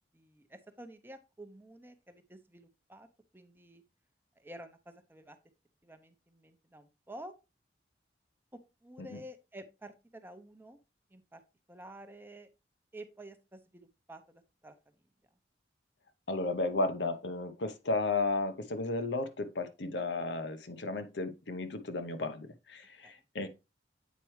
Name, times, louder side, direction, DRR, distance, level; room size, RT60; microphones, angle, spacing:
voice 1, 0.1-3.1 3.3-3.8 4.4-5.4 5.8-7.3 8.5-10.8 11.1-11.4 11.7-12.5 12.9-14.8 23.0-23.1, right 1 dB, 10° right, 0.6 m, -50 dB
voice 2, 16.3-23.5, left 2 dB, 80° left, 0.8 m, -34 dB
8.2 x 4.5 x 3.1 m
head